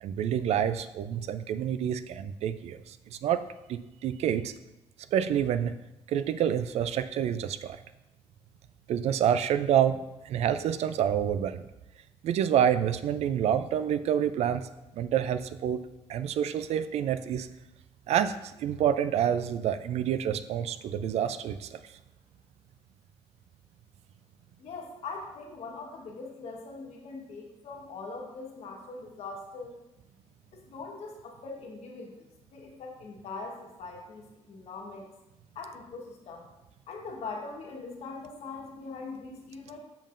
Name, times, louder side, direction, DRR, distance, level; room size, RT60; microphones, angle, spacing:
voice 1, 0.0-4.5 5.1-5.7 6.1-7.8 8.9-11.7 12.2-14.6 15.0-15.8 16.1-17.5 18.1-21.8, right 9 dB, 70° right, 12 dB, 0.4 m, -28 dB
voice 2, 24.6-29.7 30.5-35.0 35.5-36.4 36.9-39.8, left 3 dB, 70° left, 0 dB, 1.3 m, -42 dB
6.9 x 5.4 x 2.5 m, 0.95 s
cardioid pair, 90°, 11 cm